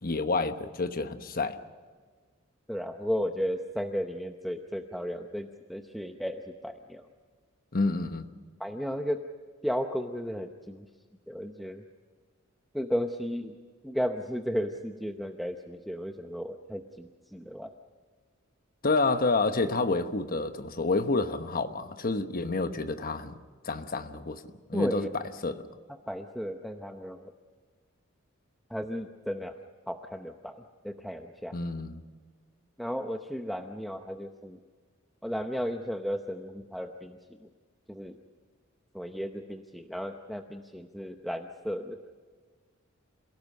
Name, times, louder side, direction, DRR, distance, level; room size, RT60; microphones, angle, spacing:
voice 1, 0.0-1.6 7.7-8.2 18.8-23.3 23.6-24.4 24.7-25.1 25.4-25.6 31.5-32.0, left 3 dB, 45° left, 1.1 m, -29 dB
voice 2, 2.7-7.0 8.6-9.2 9.6-10.9 11.3-11.8 12.7-13.5 13.8-17.7 24.7-25.1 26.1-27.2 28.7-29.6 29.9-31.5 32.8-34.6 35.2-37.2 37.9-38.2 38.9-42.0, equal, ahead, 0.8 m, -34 dB
27.5 x 17.5 x 6.6 m
head